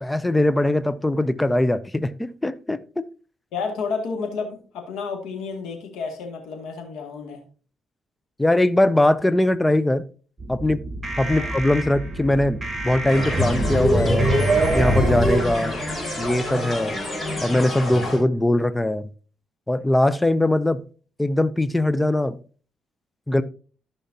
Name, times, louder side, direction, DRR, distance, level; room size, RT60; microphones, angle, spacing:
voice 1, 0.0-3.0 8.4-10.0 10.5-10.8 11.2-12.6 12.8-14.3 14.7-15.7 16.2-17.0 17.4-19.1 19.7-20.8 21.2-22.4 23.3-23.4, left 1 dB, 10° left, 0.5 m, -21 dB
voice 2, 3.5-7.4 11.3-11.5, left 5 dB, 85° left, 2.2 m, -31 dB
sound 1, 10.4-15.4, right 1 dB, 20° right, 1.8 m, -24 dB
sound 2, 13.1-18.2, left 1 dB, 25° left, 4.4 m, -27 dB
13.5 x 5.7 x 2.8 m
cardioid pair, 95°, 0 cm